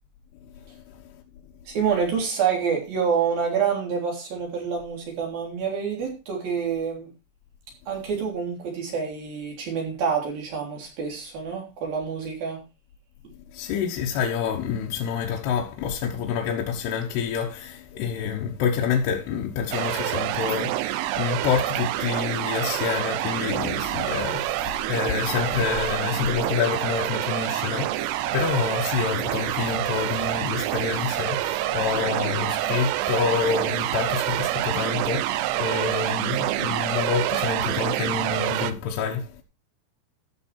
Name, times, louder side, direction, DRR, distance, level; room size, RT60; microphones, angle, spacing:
voice 1, 0.6-1.2 13.5-39.4, left 6 dB, 70° left, 3.0 m, -28 dB
voice 2, 1.7-7.1 7.9-12.6, right 6 dB, 55° right, 5.1 m, -27 dB
sound 1, 19.7-38.7, right 15 dB, 80° right, 2.6 m, -27 dB
13.5 x 6.9 x 4.4 m
omnidirectional pair, 5.3 m